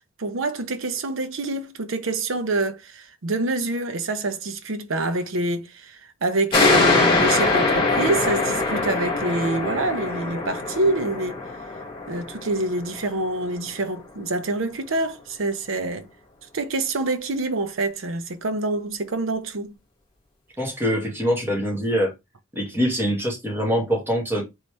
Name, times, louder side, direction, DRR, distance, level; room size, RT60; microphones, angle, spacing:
voice 1, 0.2-11.4 12.1-16.1 16.5-19.7, right 2 dB, 80° right, 0.7 m, -26 dB
sound 1, 6.5-13.7, left 3 dB, 25° left, 1.9 m, -23 dB
voice 2, 20.6-22.1 22.5-24.4, equal, 10° right, 1.6 m, -24 dB
4.1 x 3.2 x 3.3 m
head